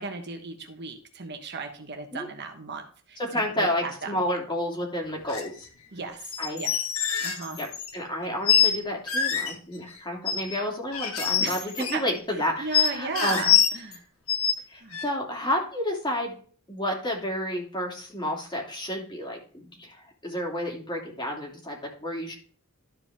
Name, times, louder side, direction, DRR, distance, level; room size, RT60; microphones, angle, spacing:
voice 1, 0.0-4.1 5.9-6.7 7.2-7.6 11.4-11.6 11.9-12.0 12.6-14.0 14.8-15.0, right 4 dB, 55° right, 5 dB, 1.3 m, -35 dB
voice 2, 3.2-5.5 6.4-6.7 7.6-13.5 14.7-16.3 16.7-22.3, left 1 dB, 20° left, -1 dB, 2.8 m, -31 dB
sound 1, 5.3-5.5 6.2-7.9 8.5-8.8 9.1-9.5 10.3-10.6 10.9-12.0 12.7-14.0 14.3-14.5 14.9-15.0, left 8 dB, 80° left, 1.6 m, -24 dB
13.0 x 5.0 x 3.6 m, 0.43 s
head